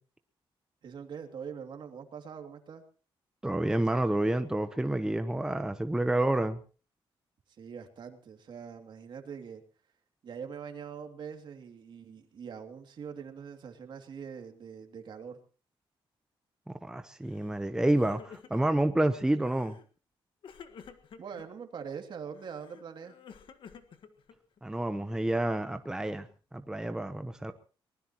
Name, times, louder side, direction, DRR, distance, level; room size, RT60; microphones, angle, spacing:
voice 1, 0.8-2.8 7.6-9.6 10.2-15.4 21.2-23.1, right 7 dB, 55° right, 4 dB, 2.7 m, -43 dB
voice 2, 3.4-6.6 16.7-19.8 24.6-26.3 26.5-27.5, right 1 dB, 5° right, 8 dB, 0.9 m, -29 dB
Crying sobbing, 17.3-17.6 17.9-18.9 19.4-19.9 20.4-21.5 22.3-24.6, left 7 dB, 60° left, 1.6 m, -51 dB
23.5 x 20.0 x 3.0 m, 0.38 s
cardioid pair, 130°, 9 cm